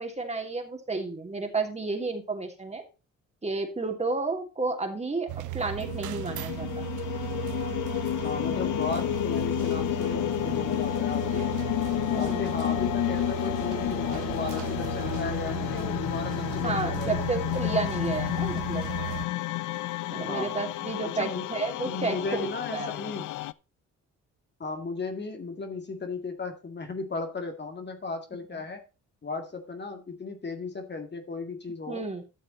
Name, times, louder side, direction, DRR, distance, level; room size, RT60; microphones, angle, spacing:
voice 1, 0.0-2.8 3.4-5.3 5.5-6.9 12.1-12.4 16.6-18.9 20.1-22.4 22.7-22.9 31.9-32.2, right 3 dB, 20° right, 3 dB, 2.9 m, -31 dB
sound 1, 5.3-19.3, right 16 dB, 75° right, 0.9 m, -36 dB
sound 2, 5.8-23.5, left 17 dB, 80° left, 0.5 m, -31 dB
voice 2, 8.2-11.5 12.1-17.6 20.1-20.6 21.0-21.5 21.8-23.3 24.6-28.8 29.2-32.1, left 3 dB, 35° left, 5 dB, 2.1 m, -36 dB
12.5 x 6.7 x 4.2 m, 0.30 s
cardioid pair, 90°, 30 cm